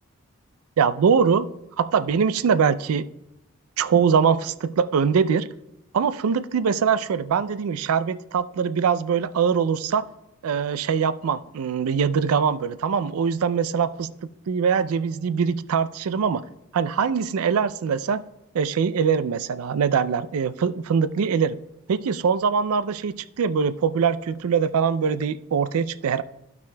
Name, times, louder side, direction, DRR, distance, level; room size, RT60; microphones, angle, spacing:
voice 1, 0.8-1.5 1.8-3.1 3.8-5.5 5.9-10.0 10.4-14.1 14.5-16.4 16.7-18.2 18.5-21.6 21.9-26.2, right 6 dB, 80° right, 14 dB, 0.4 m, -22 dB
14.0 x 5.9 x 2.2 m, 0.87 s
head